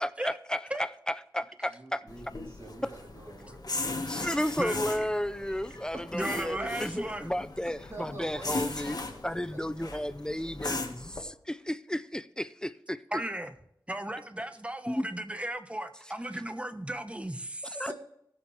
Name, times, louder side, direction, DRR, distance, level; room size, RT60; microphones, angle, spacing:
voice 1, 0.0-2.0 4.1-13.0 14.9-15.0 17.7-17.9, equal, 10° left, 0.5 m, -33 dB
voice 2, 1.7-4.0 4.6-5.0 5.7-6.8 7.9-10.1 10.4-10.6 17.9-18.0, right 2 dB, 35° right, 3.4 m, -46 dB
sound 1, 2.1-11.2, left 3 dB, 60° left, 1.7 m, -38 dB
voice 3, 4.6-5.1 6.1-7.3 13.1-13.5 13.9-17.9, right 1 dB, 15° right, 1.2 m, -35 dB
20.5 x 7.0 x 3.4 m
wide cardioid pair, 60°, 7 cm